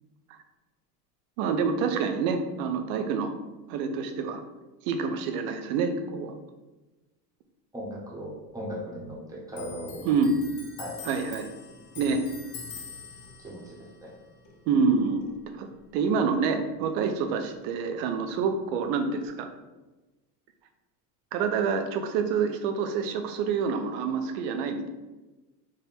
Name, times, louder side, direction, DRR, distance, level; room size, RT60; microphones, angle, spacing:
voice 1, 1.4-3.3 3.7-4.4 4.8-6.3 10.0-10.3 11.0-11.5 12.0-12.2 14.7-15.3 15.6-15.7 15.9-19.5 21.3-24.9, right 5 dB, 55° right, 6 dB, 0.6 m, -27 dB
voice 2, 7.7-10.0 10.8-11.0 13.4-14.1, equal, 5° right, -5 dB, 0.9 m, -38 dB
Clock, 9.5-16.6 16.8-18.2 18.4-19.3, left 5 dB, 35° left, 0.6 m, -45 dB
3.7 x 2.1 x 4.2 m, 1.1 s
supercardioid pair, 125°, 49 cm